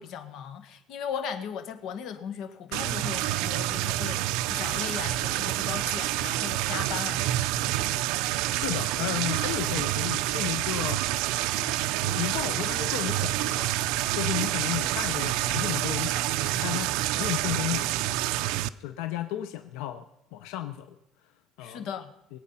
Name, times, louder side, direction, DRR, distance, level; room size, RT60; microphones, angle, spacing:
voice 1, 0.0-7.5 21.6-22.1, left 7 dB, 60° left, 8 dB, 1.6 m, -37 dB
sound 1, 2.7-18.7, right 15 dB, 85° right, 0.5 m, -28 dB
voice 2, 8.3-11.0 11.5-16.1 16.4-18.5 18.8-20.0 20.3-20.9 21.6-21.9, left 13 dB, 90° left, 8 dB, 0.8 m, -34 dB
22.5 x 8.8 x 5.7 m, 0.88 s
cardioid pair, 150°, 0 cm